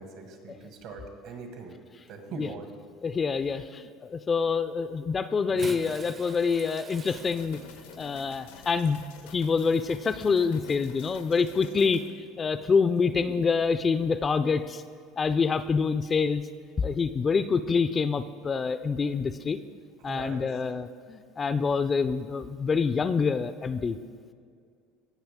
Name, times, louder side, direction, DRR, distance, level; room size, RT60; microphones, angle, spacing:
voice 1, 0.0-1.8 2.1-2.7 20.0-20.5, right 4 dB, 65° right, 5 dB, 1.6 m, -41 dB
voice 2, 3.0-7.6 8.0-9.0 9.3-14.8 15.2-16.4 16.8-19.6 20.0-24.0, left 5 dB, 25° left, 12 dB, 0.4 m, -26 dB
Bathtub (filling or washing) / Splash splatter, 5.4-11.1 12.0-12.1 13.6-13.7, right 5 dB, 35° right, 0.6 m, -46 dB
sound 1, 7.1-12.1, left 7 dB, 85° left, 0.8 m, -49 dB
16.5 x 5.6 x 3.6 m, 2.2 s
supercardioid pair, 110°, 0 cm